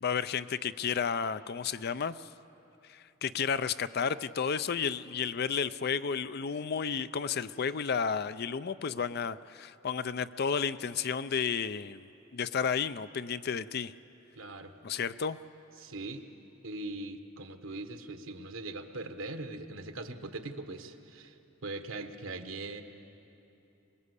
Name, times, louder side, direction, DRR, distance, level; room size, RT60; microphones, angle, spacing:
voice 1, 0.0-2.3 2.9-12.1 12.3-13.9 14.8-15.4, left 6 dB, 50° left, 14 dB, 0.5 m, -32 dB
voice 2, 14.4-14.7 15.8-16.2 16.6-22.8, right 2 dB, 75° right, 7 dB, 1.4 m, -41 dB
23.5 x 21.0 x 8.3 m, 3.0 s
head